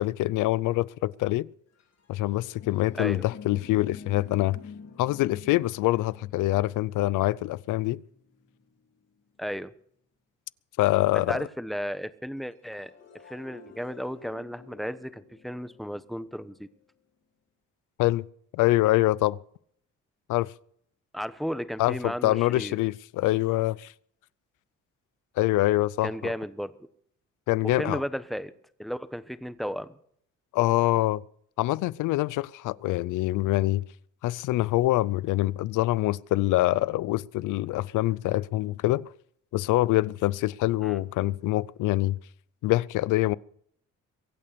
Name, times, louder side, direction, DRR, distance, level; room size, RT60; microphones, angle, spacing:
voice 1, 0.0-1.5 2.1-4.6 5.0-8.0 10.8-11.4 18.0-18.3 18.5-19.4 20.3-20.5 21.8-23.9 25.4-26.3 27.5-28.0 30.5-31.2 31.6-33.8 34.2-39.1 39.5-42.2 42.6-43.4, left 17 dB, 85° left, 0.6 m, -25 dB
sound 1, 1.7-9.3 12.5-16.6, left 5 dB, 60° left, 3.8 m, -49 dB
voice 2, 9.4-9.7 11.1-12.9 13.3-16.7 21.1-22.7 26.0-26.7 27.6-28.5 28.8-29.9 40.8-41.0, equal, ahead, 1.1 m, -34 dB
23.0 x 8.7 x 6.8 m
cardioid pair, 90°, 30 cm